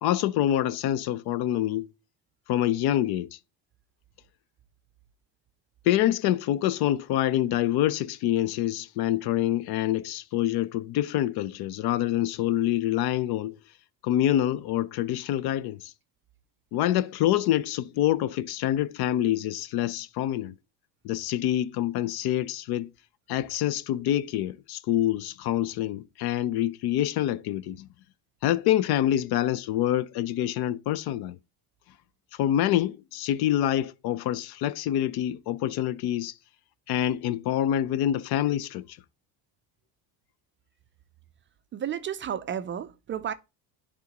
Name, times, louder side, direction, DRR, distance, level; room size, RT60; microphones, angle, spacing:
voice 1, 0.0-1.9 2.5-3.4 5.9-13.5 14.0-15.9 16.7-20.5 21.0-22.9 23.3-27.9 28.4-31.4 32.3-36.3 36.9-39.0, left 12 dB, 60° left, 0.6 m, -26 dB
voice 2, 41.7-43.3, right 9 dB, 30° right, 0.4 m, -32 dB
10.5 x 3.7 x 2.8 m
cardioid pair, 120°, 42 cm